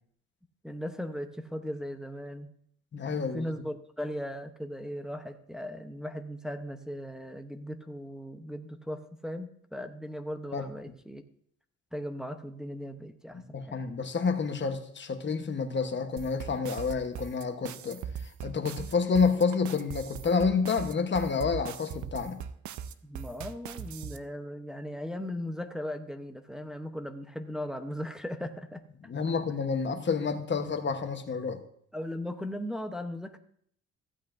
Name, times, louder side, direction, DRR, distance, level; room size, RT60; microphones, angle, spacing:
voice 1, 0.6-2.5 3.0-11.2 11.9-13.4 13.7-13.8 23.0-28.8 31.9-33.4, equal, ahead, 5 dB, 0.8 m, -38 dB
voice 2, 2.9-3.4 10.5-10.6 13.5-22.4 29.1-31.6, left 5 dB, 40° left, 7 dB, 1.1 m, -29 dB
sound 1, 16.2-24.2, right 8 dB, 70° right, 0.7 m, -39 dB
15.0 x 8.3 x 2.6 m, 0.65 s
cardioid pair, 90°, 30 cm